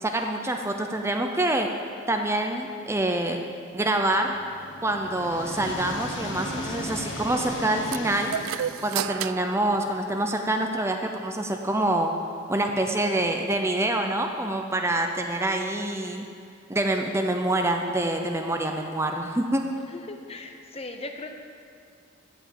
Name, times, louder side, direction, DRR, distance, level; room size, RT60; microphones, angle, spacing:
voice 1, 0.0-1.7 2.1-3.4 3.7-4.3 4.8-8.3 8.8-12.1 12.5-16.3 16.7-19.6, right 1 dB, 15° right, 4 dB, 0.6 m, -26 dB
sound 1, 4.1-10.0, left 1 dB, 60° left, 1.6 m, -36 dB
sound 2, 7.9-10.6, right 11 dB, 90° right, 0.3 m, -33 dB
voice 2, 19.9-21.3, left 2 dB, 30° left, 5 dB, 0.9 m, -38 dB
15.5 x 5.2 x 8.9 m, 2.4 s
head